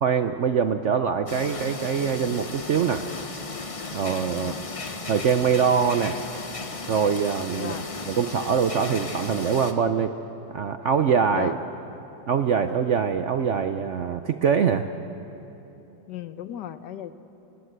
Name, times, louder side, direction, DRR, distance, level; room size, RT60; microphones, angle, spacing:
voice 1, 0.0-3.1 3.9-4.5 5.1-6.2 6.9-7.7 8.1-10.1 10.5-11.6 12.3-14.9, right 7 dB, 75° right, 8 dB, 0.6 m, -23 dB
sound 1, 1.3-9.7, left 3 dB, 45° left, 0.4 m, -35 dB
voice 2, 7.6-7.9 11.3-11.6 16.1-17.2, left 11 dB, 65° left, 12 dB, 1.4 m, -35 dB
24.5 x 20.0 x 8.0 m, 2.9 s
omnidirectional pair, 2.1 m